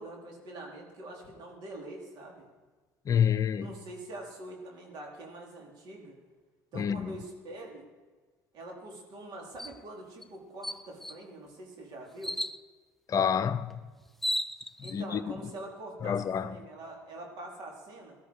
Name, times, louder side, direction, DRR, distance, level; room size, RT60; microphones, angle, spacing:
voice 1, 0.0-2.5 3.6-6.2 6.7-7.9 8.5-12.4 14.8-18.2, right 1 dB, 65° right, 4.2 m, -44 dB
voice 2, 3.1-3.7 6.8-7.1 13.1-13.7 14.9-15.2 16.0-16.5, left 8 dB, 45° left, 0.8 m, -27 dB
sound 1, 9.6-9.8 10.2-10.3 10.6-11.2 12.2-12.6 13.7-13.8 14.1-15.0, left 1 dB, ahead, 0.5 m, -34 dB
17.5 x 13.0 x 4.9 m
supercardioid pair, 85°, 8 cm